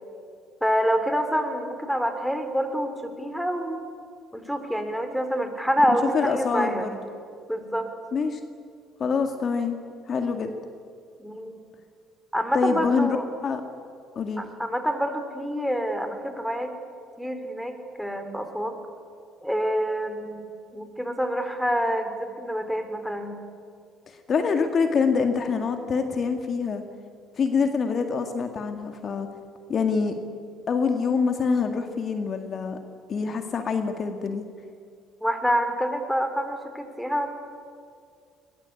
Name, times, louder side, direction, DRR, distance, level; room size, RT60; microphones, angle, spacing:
voice 1, 0.6-3.8 4.3-6.9 7.5-7.9 11.2-11.6 12.3-13.3 14.4-16.7 17.2-18.8 19.4-23.4 35.2-37.3, equal, ahead, 8 dB, 4.0 m, -27 dB
voice 2, 6.1-7.0 8.1-8.4 9.0-9.8 10.1-10.5 12.5-13.2 13.4-13.6 14.2-14.5 24.1-26.8 27.4-29.3 29.7-30.1 30.7-32.8 33.1-34.4, left 5 dB, 50° left, 6 dB, 2.0 m, -25 dB
21.0 x 20.5 x 8.5 m, 2.3 s
hypercardioid pair, 65°, 0 cm